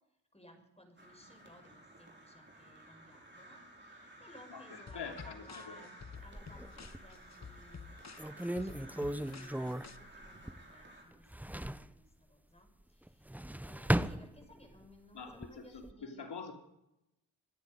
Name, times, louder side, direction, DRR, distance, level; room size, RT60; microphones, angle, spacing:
voice 1, 0.3-8.0 8.3-16.3, left 1 dB, 15° left, 5 dB, 5.9 m, -59 dB
Crow, 1.0-11.0, right 1 dB, 25° right, 5.8 m, -55 dB
voice 2, 4.5-5.8 15.1-16.5, left 5 dB, 65° left, 4 dB, 3.1 m, -45 dB
sound 1, 4.9-10.0, left 5 dB, 40° left, 1.2 m, -51 dB
sound 2, 6.2-7.2 7.7-7.8 8.2-10.8 11.1-11.9 13.1-14.8 15.3-15.9, right 1 dB, 5° right, 0.8 m, -36 dB
25.0 x 10.0 x 5.3 m, 0.86 s
cardioid pair, 50°, 43 cm